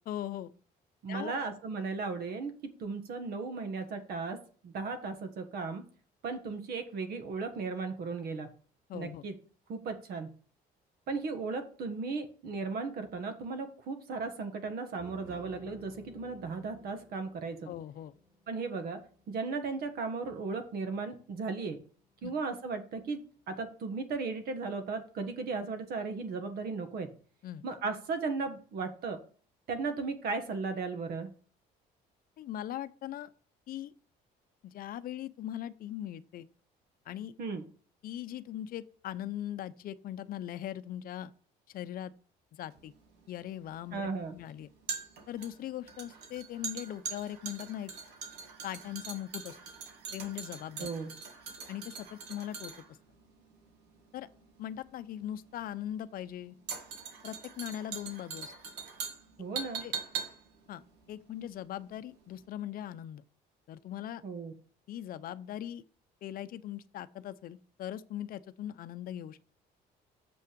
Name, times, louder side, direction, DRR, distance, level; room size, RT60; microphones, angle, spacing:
voice 1, 0.1-0.5 1.1-1.3 8.9-9.2 17.7-18.1 22.2-22.3 27.4-27.6 32.4-33.3 33.7-33.9 34.6-36.5 37.1-37.3 38.0-41.3 41.7-42.1 42.5-42.9 43.3-44.7 45.3-47.9 48.6-49.6 50.1-50.9 51.7-52.7 54.1-54.3 54.6-56.6 57.2-58.5 59.8-59.9 60.7-60.8 61.1-63.2 63.7-64.2 64.9-65.8 66.2-69.4, left 11 dB, 60° left, 0.6 m, -40 dB
voice 2, 1.0-4.4 4.6-5.8 6.2-8.5 8.9-9.3 9.7-10.3 11.1-17.7 18.5-19.0 19.3-21.8 22.2-23.2 23.5-27.1 27.6-29.2 29.7-31.3 37.4-37.6 43.9-44.4 50.8-51.1 59.4-59.8 64.2-64.5, right 4 dB, 65° right, 1.5 m, -36 dB
sound 1, 15.0-22.6 23.1-23.5, left 3 dB, 20° right, 2.3 m, -57 dB
sound 2, 42.7-62.0 62.3-62.4, right 6 dB, 85° right, 1.7 m, -42 dB
7.1 x 5.6 x 5.2 m
cardioid pair, 110°, 17 cm